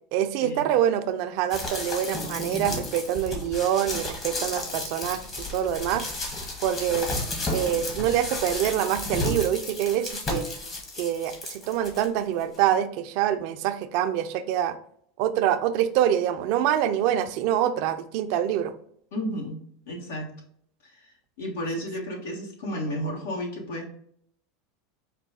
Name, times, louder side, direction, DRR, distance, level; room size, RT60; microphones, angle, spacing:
voice 1, 0.1-6.1 6.6-7.1 7.5-10.5 11.0-14.8 15.2-18.7, right 10 dB, 60° right, 10 dB, 0.4 m, -25 dB
sound 1, 1.5-12.1 12.5-12.6, left 2 dB, 35° left, 1.4 m, -33 dB
voice 2, 19.1-20.3 20.8-23.9, equal, 80° left, 0 dB, 1.4 m, -33 dB
4.9 x 2.2 x 3.7 m, 0.65 s
hypercardioid pair, 105°, 0 cm